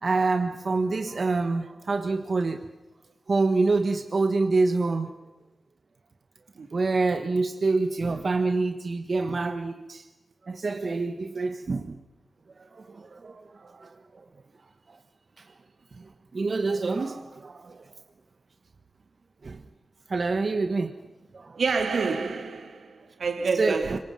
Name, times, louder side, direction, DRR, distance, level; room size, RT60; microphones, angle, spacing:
voice 1, 0.0-2.6 3.3-5.1 6.7-10.0 10.4-11.9 12.6-13.9 16.0-16.1 16.3-17.8 19.4-19.6 20.1-20.9 21.3-21.6 23.6-24.0, right 3 dB, 55° right, 1.3 m, -26 dB
voice 2, 21.6-24.0, right 4 dB, 85° right, 2.3 m, -28 dB
26.5 x 24.0 x 5.8 m
wide cardioid pair, 90°, 0 cm